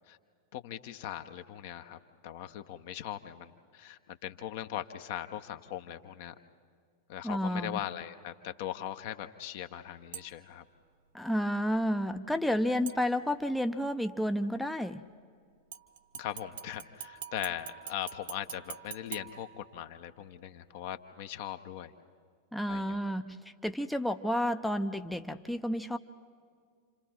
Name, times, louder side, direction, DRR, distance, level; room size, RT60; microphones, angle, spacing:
voice 1, 0.5-6.3 7.1-10.6 16.1-21.9 22.7-23.0, left 11 dB, 50° left, 8 dB, 0.9 m, -40 dB
voice 2, 7.2-7.8 11.1-15.0 22.5-26.0, equal, ahead, 7 dB, 0.6 m, -31 dB
sound 1, 10.1-10.6 12.9-13.6 15.7-20.1 20.5-20.6, right 9 dB, 60° right, 1.2 m, -46 dB
29.0 x 27.0 x 4.5 m, 2.1 s
figure-of-eight pair, 90°, 0 cm